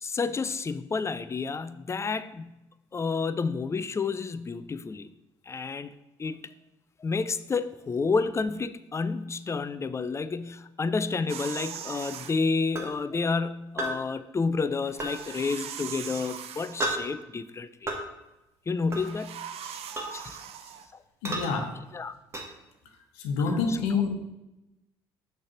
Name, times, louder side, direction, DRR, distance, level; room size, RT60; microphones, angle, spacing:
voice 1, 0.0-2.6 2.9-5.1 5.5-5.9 6.2-6.5 7.0-17.9 18.7-19.4 20.1-20.4 21.9-22.1 23.7-23.8, left 4 dB, 25° left, 14 dB, 0.4 m, -30 dB
sound 1, 11.3-12.4 14.8-16.9 18.8-20.9, right 8 dB, 65° right, 0.6 m, -40 dB
sound 2, 12.8-12.9 13.8-14.0 15.0-15.1 16.8-17.0 17.9-18.0 18.9-19.1 20.0-20.1 21.2-21.5 22.3-22.5, right 1 dB, 25° right, 1.5 m, -31 dB
voice 2, 21.2-21.7 23.1-24.1, left 5 dB, 85° left, 3 dB, 1.0 m, -27 dB
6.2 x 3.4 x 5.8 m, 0.96 s
hypercardioid pair, 60°, 11 cm